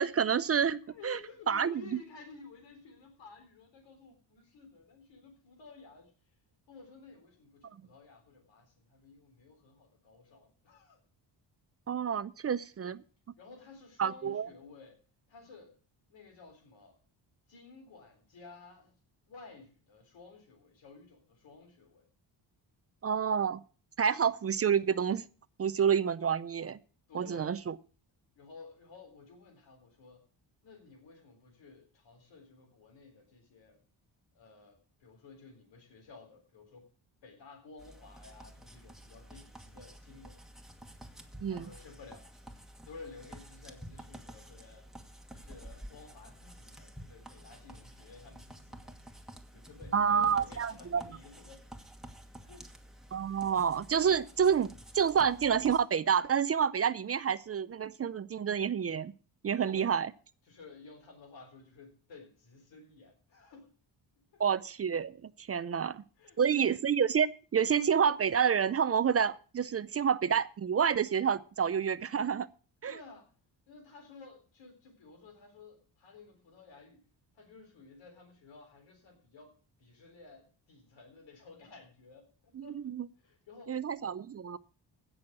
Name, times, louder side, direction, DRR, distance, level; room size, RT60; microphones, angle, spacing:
voice 1, 0.0-1.2 1.5-2.0 11.9-13.0 14.0-14.5 23.0-23.6 24.0-25.2 25.6-26.8 27.1-27.7 41.4-41.7 49.9-51.0 53.1-54.7 54.9-59.1 59.4-60.1 64.4-66.0 66.4-72.5 72.8-73.0 82.5-83.1 83.7-84.6, right 7 dB, 35° right, 17 dB, 0.5 m, -29 dB
voice 2, 0.9-6.1 6.7-11.0 13.4-15.0 15.3-15.8 16.1-17.0 17.5-18.9 19.3-22.1 27.1-27.6 28.4-30.3 30.6-33.8 34.3-36.9 37.2-40.4 41.5-42.6 42.9-44.9 45.3-48.9 49.5-51.6 52.4-52.7 59.6-59.9 60.5-63.7 64.3-64.4 65.7-65.9 66.2-66.7 72.9-73.3 73.7-77.0 77.3-82.8 83.2-83.8, left 4 dB, 90° left, 5 dB, 4.0 m, -54 dB
sound 1, 37.8-55.8, right 1 dB, ahead, 1.5 m, -51 dB
16.0 x 6.3 x 6.1 m, 0.39 s
cardioid pair, 110°, 43 cm